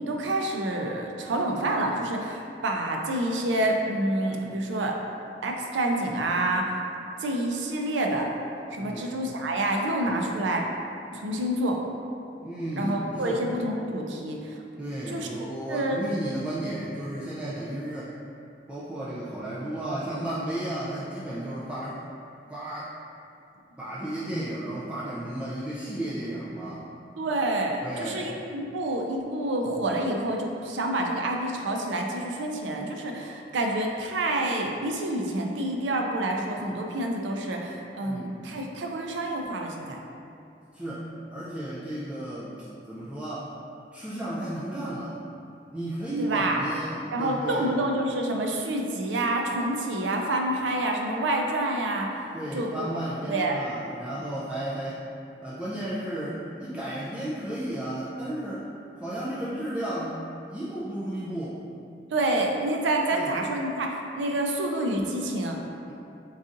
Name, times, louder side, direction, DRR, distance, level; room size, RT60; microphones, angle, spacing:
voice 1, 0.1-4.9 5.4-6.8 7.2-8.3 8.7-10.7 11.1-11.8 12.8-14.6 15.1-15.3 15.7-16.0 27.2-40.0 46.2-46.6 47.1-52.1 52.5-53.0 53.2-53.6 62.1-65.6, right 1 dB, 90° right, 1 dB, 0.4 m, -28 dB
voice 2, 8.8-9.1 10.1-10.2 12.4-13.4 14.8-18.1 18.7-22.0 22.5-22.9 23.8-26.8 27.8-28.3 38.0-38.4 40.7-42.6 42.9-43.5 43.9-45.2 45.7-47.7 52.3-55.0 55.4-58.7 59.0-61.6 63.1-63.4 65.9-66.0, right 1 dB, 5° right, -10 dB, 0.3 m, -33 dB
4.0 x 3.7 x 2.5 m, 2.6 s
head